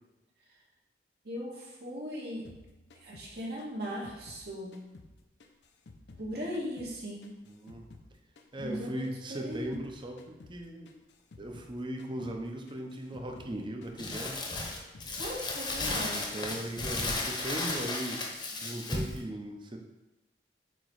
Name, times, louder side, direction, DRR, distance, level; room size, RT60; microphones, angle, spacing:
voice 1, 1.2-2.5 3.0-4.8 6.2-7.4 8.6-9.8 15.2-16.3, equal, 65° right, -3 dB, 1.6 m, -38 dB
sound 1, 2.4-5.1 5.4-8.1 8.4-11.7 12.0-12.4 12.7-15.4 15.6-16.1 16.3-17.0, left 2 dB, 80° left, 0.7 m, -54 dB
voice 2, 7.5-7.9 8.5-10.9 11.4-14.4 16.1-18.2 18.6-19.8, right 1 dB, 25° right, 3 dB, 0.7 m, -38 dB
Crumpling crinkling, 14.0-19.2, left 2 dB, 25° left, 0.9 m, -34 dB
8.0 x 3.0 x 4.7 m, 1.0 s
head